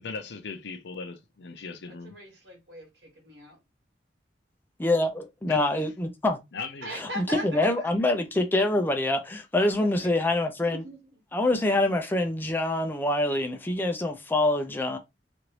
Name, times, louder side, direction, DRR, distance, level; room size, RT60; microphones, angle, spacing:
voice 1, 0.0-2.2 5.5-5.6 6.5-6.9, left 4 dB, 80° left, 0.5 m, -38 dB
voice 2, 1.9-3.6 6.8-7.9 9.6-10.1 10.7-11.0, equal, 70° right, 1.4 m, -40 dB
voice 3, 4.8-6.4 6.9-10.8 11.3-15.0, left 2 dB, 10° left, 0.4 m, -25 dB
3.1 x 2.5 x 2.9 m
head